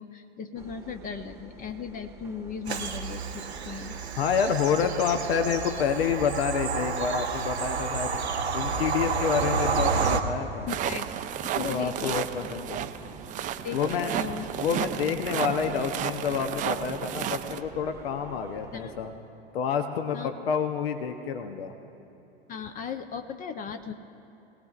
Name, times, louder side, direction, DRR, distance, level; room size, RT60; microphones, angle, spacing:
voice 1, 0.0-4.0 10.7-11.2 11.4-12.5 13.6-14.5 15.0-15.1 18.7-18.9 20.1-20.3 22.5-23.9, left 6 dB, 25° left, 7 dB, 0.6 m, -37 dB
sound 1, 0.6-19.1, right 2 dB, 10° right, 1.1 m, -48 dB
Bird vocalization bird call bird song / Train, 2.7-10.2, right 5 dB, 90° right, 1.0 m, -30 dB
voice 2, 4.2-8.1 8.5-10.7 11.5-12.9 13.7-14.2 14.5-19.1 19.5-21.7, left 7 dB, 70° left, 7 dB, 0.9 m, -28 dB
sound 2, 10.7-17.6, right 10 dB, 25° right, 0.5 m, -33 dB
21.5 x 18.0 x 2.4 m, 3.0 s
hypercardioid pair, 95°, 32 cm